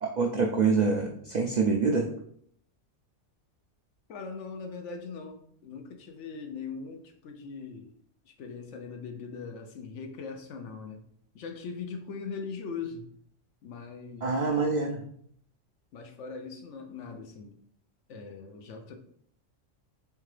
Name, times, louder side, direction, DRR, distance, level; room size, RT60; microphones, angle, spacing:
voice 1, 0.0-2.1 14.2-15.0, right 4 dB, 80° right, 2 dB, 0.4 m, -26 dB
voice 2, 4.1-7.9 8.2-11.0 11.3-13.1 13.6-14.5 15.9-17.6 18.1-18.9, left 5 dB, 70° left, 5 dB, 0.9 m, -40 dB
3.6 x 3.4 x 3.2 m, 0.65 s
omnidirectional pair, 1.3 m